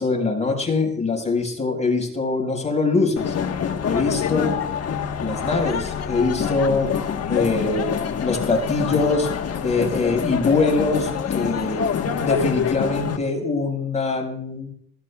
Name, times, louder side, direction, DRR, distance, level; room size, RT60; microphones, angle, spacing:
voice 1, 0.0-3.3 3.8-4.6 5.2-6.9 7.3-9.3 9.6-11.8 12.2-14.7, left 3 dB, 20° left, 1 dB, 5.0 m, -23 dB
sound 1, 3.2-13.2, left 7 dB, 55° left, 1.4 m, -26 dB
20.5 x 16.5 x 2.4 m, 0.65 s
cardioid pair, 90°, 30 cm